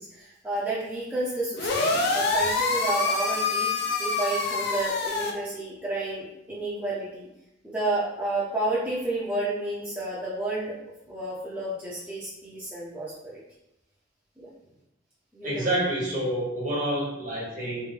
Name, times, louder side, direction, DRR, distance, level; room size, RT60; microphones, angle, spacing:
voice 1, 0.1-7.3 7.6-10.8 11.1-13.4 14.4-14.5 15.3-15.7, right 2 dB, 10° right, -9 dB, 0.7 m, -31 dB
sound 1, 1.6-5.3, left 3 dB, 55° left, 0.5 m, -26 dB
voice 2, 15.4-17.9, right 1 dB, 45° right, -5 dB, 1.2 m, -28 dB
3.3 x 2.6 x 3.3 m, 0.88 s
head